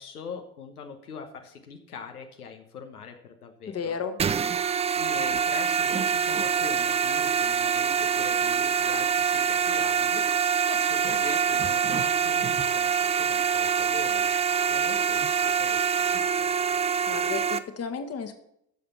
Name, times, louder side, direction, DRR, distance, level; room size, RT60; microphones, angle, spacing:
voice 1, 0.0-4.0 4.9-14.3 14.7-16.6, left 6 dB, 75° left, 4 dB, 1.2 m, -42 dB
voice 2, 3.7-4.2 16.7-18.3, left 6 dB, 30° left, 8 dB, 1.5 m, -33 dB
sound 1, 4.2-17.6, right 7 dB, 15° right, 0.4 m, -25 dB
13.5 x 6.8 x 5.7 m, 0.76 s
figure-of-eight pair, 55°, 45 cm